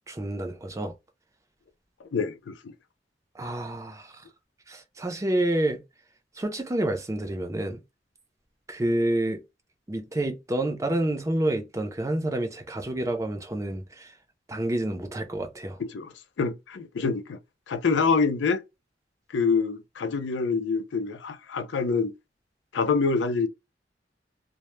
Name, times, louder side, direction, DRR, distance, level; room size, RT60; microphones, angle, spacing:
voice 1, 0.1-0.9 3.3-4.1 4.7-5.8 6.4-7.8 8.7-9.4 9.9-14.1 14.5-15.8, right 1 dB, 20° right, 0.5 m, -28 dB
voice 2, 2.1-2.7 15.8-16.1 16.4-17.4 17.7-18.6 19.3-22.1 22.7-23.5, left 4 dB, 90° left, 0.4 m, -26 dB
2.1 x 2.1 x 3.0 m
head